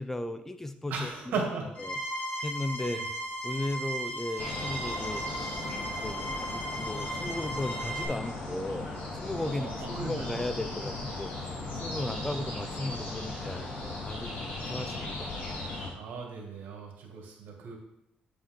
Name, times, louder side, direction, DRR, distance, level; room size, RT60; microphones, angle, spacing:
voice 1, 0.0-1.1 1.9-2.0 2.4-3.0 3.4-5.2 5.8-13.6 14.1-15.4, left 1 dB, 10° left, 10 dB, 0.4 m, -36 dB
voice 2, 0.9-1.7 2.8-3.1 9.4-10.5 11.9-12.4 16.0-17.8, right 4 dB, 75° right, 1 dB, 2.0 m, -37 dB
sound 1, 1.7-8.0, right 1 dB, 45° left, 2.4 m, -36 dB
sound 2, 4.4-15.9, left 2 dB, 70° left, 3.0 m, -37 dB
8.4 x 5.3 x 3.7 m, 0.80 s
cardioid pair, 120°, 3 cm